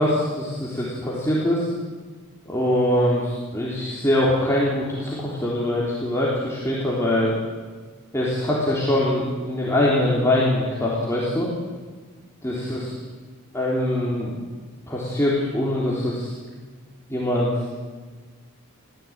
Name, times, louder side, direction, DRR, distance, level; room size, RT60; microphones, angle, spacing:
voice 1, 0.0-1.7 2.5-7.4 8.1-11.5 12.4-12.9 13.5-14.4 14.9-16.3 17.1-17.5, left 1 dB, 15° left, -6 dB, 3.7 m, -23 dB
23.5 x 15.5 x 8.9 m, 1.4 s
head